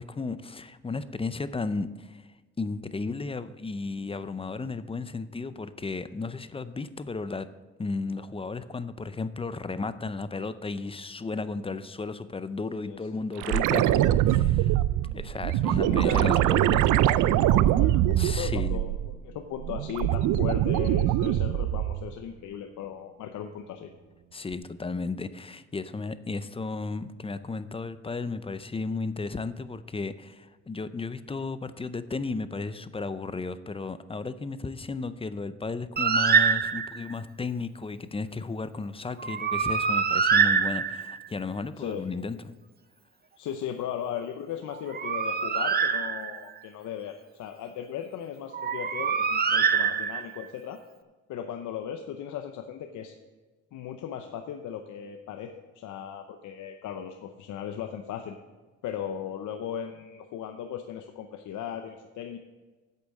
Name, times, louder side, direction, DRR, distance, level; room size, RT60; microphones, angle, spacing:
voice 1, 0.0-2.3 2.6-7.5 7.8-14.8 15.1-16.8 18.2-18.8 24.3-42.4, left 3 dB, 20° left, 13 dB, 0.5 m, -34 dB
sound 1, 13.4-19.2 19.6-22.1 24.5-24.6, right 13 dB, 85° right, 0.5 m, -23 dB
voice 2, 15.6-23.9 41.8-42.1 43.4-50.8 51.3-53.1 53.7-58.4 58.8-62.4, left 9 dB, 75° left, 6 dB, 0.8 m, -37 dB
Bird, 36.0-37.1 39.2-41.3 44.7-46.6 48.5-50.4, right 6 dB, 30° right, 0.7 m, -25 dB
8.4 x 8.3 x 6.4 m, 1.3 s
cardioid pair, 90°, 30 cm